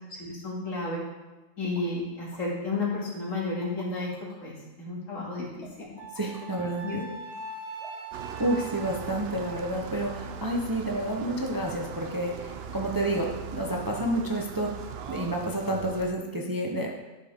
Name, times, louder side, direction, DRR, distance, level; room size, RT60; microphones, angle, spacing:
voice 1, 0.1-1.0 1.6-4.1 4.4-5.5 5.8-5.9 6.8-7.0, left 3 dB, 70° left, -5 dB, 2.8 m, -32 dB
sound 1, 1.7-1.9 2.3-2.4 3.3-4.4 5.6-6.6 7.8-8.1 8.6-8.8 9.1-9.4 9.7-9.8, equal, 50° left, 3.2 m, -50 dB
Wind instrument woodwind instrument, 6.0-10.3, right 3 dB, 90° right, 1.4 m, -42 dB
voice 2, 6.1-7.0 8.4-14.7 15.1-16.9, right 1 dB, 20° right, 0 dB, 0.8 m, -29 dB
sound 2, 8.1-16.1, right 6 dB, 60° right, 0.7 m, -40 dB
12.5 x 7.5 x 3.6 m, 1.1 s
omnidirectional pair, 1.4 m